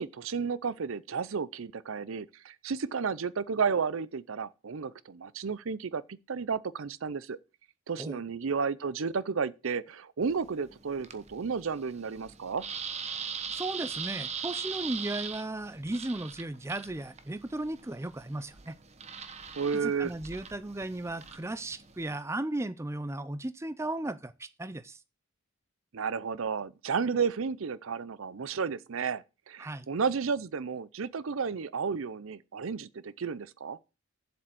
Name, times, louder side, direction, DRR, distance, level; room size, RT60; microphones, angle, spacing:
voice 1, 0.0-7.4 7.9-12.6 19.6-20.1 25.9-33.8, right 5 dB, 65° right, 0.5 m, -32 dB
sound 1, 10.2-22.2, right 6 dB, 30° right, 1.0 m, -41 dB
voice 2, 13.5-18.8 19.8-25.0 29.6-29.9, right 2 dB, 10° right, 0.4 m, -35 dB
7.6 x 6.9 x 7.6 m
head